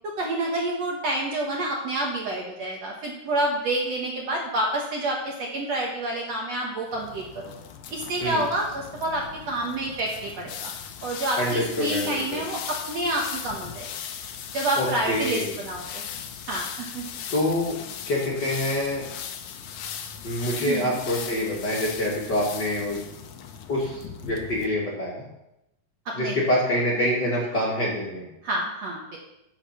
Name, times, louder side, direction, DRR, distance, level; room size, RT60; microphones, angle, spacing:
voice 1, 0.2-7.5 7.9-10.7 11.0-13.9 14.5-16.1 16.5-17.0 20.7-21.0 26.1-26.4 28.4-29.2, right 1 dB, 55° right, -1 dB, 2.1 m, -28 dB
sound 1, 6.9-24.7, left 8 dB, 70° left, 2.0 m, -38 dB
voice 2, 11.4-12.4 14.8-15.5 17.3-17.8 18.1-19.0 20.2-23.0 23.7-25.2 26.1-28.3, left 1 dB, 35° left, -4 dB, 2.4 m, -26 dB
15.5 x 6.6 x 5.8 m, 0.88 s
omnidirectional pair, 4.3 m